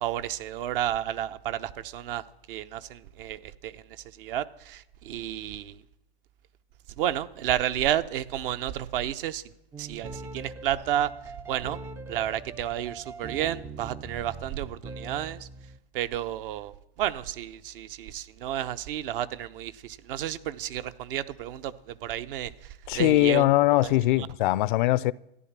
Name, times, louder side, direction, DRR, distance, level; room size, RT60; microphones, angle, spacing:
voice 1, 0.0-2.2 2.5-3.8 4.2-5.8 7.0-9.4 9.8-11.1 11.5-11.8 12.1-15.5 15.9-22.5 22.9-23.4 23.7-24.3, right 11 dB, 60° right, 0.9 m, -31 dB
sound 1, 9.7-15.8, right 3 dB, 10° right, 0.4 m, -42 dB
voice 2, 22.9-25.1, left 16 dB, 50° left, 0.5 m, -21 dB
14.0 x 10.5 x 7.4 m
hypercardioid pair, 120°, 31 cm